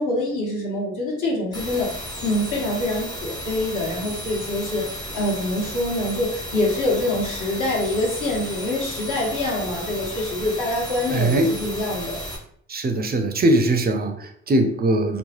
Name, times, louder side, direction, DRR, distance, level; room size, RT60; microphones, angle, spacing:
voice 1, 0.0-12.2, left 1 dB, 55° left, -4 dB, 1.4 m, -25 dB
sound 1, 1.5-12.4, equal, 10° left, 0.7 m, -34 dB
voice 2, 11.1-11.5 12.7-15.2, right 1 dB, 25° right, 6 dB, 0.5 m, -21 dB
2.9 x 2.1 x 2.9 m, 0.65 s
hypercardioid pair, 45°, 36 cm